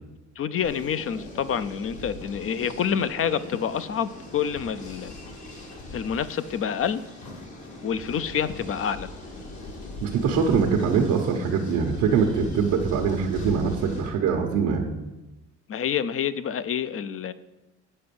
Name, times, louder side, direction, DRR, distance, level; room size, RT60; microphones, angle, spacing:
voice 1, 0.4-5.1 5.9-7.0 7.8-9.1 15.7-17.3, left 8 dB, 45° left, 14 dB, 0.6 m, -27 dB
sound 1, 0.6-14.1, left 2 dB, 70° left, 2.6 m, -40 dB
voice 2, 10.0-14.9, right 6 dB, 90° right, 0 dB, 1.1 m, -23 dB
8.7 x 5.2 x 6.9 m, 1.0 s
cardioid pair, 90°, 30 cm